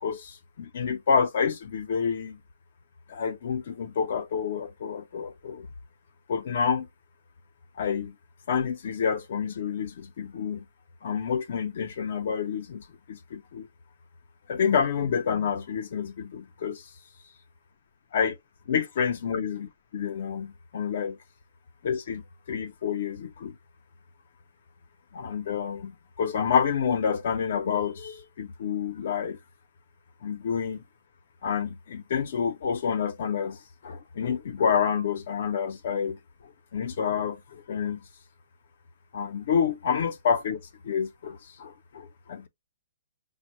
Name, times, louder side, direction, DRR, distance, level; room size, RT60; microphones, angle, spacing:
voice 1, 0.0-2.4 3.1-5.7 6.3-6.9 7.8-8.2 8.5-10.6 11.0-13.7 14.5-16.8 18.1-18.4 18.7-21.2 21.8-23.5 25.1-29.4 30.2-30.8 31.4-36.2 36.7-38.0 39.1-42.5, left 7 dB, 40° left, 0.5 m, -28 dB
5.1 x 2.1 x 3.0 m
hypercardioid pair, 180°, 0 cm